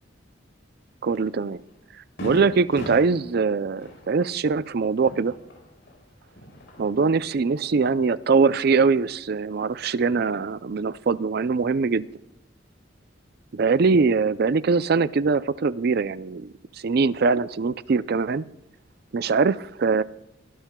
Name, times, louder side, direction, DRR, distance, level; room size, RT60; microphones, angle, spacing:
voice 1, 1.0-1.6 2.2-5.3 6.8-12.1 13.5-16.5 16.8-18.4 19.1-20.0, right 4 dB, 55° right, 17 dB, 0.4 m, -22 dB
Fireworks, 1.1-1.3 1.7-1.8 2.2-6.0 6.3-7.1, equal, 65° left, 4.4 m, -40 dB
23.0 x 12.0 x 2.3 m, 0.86 s
head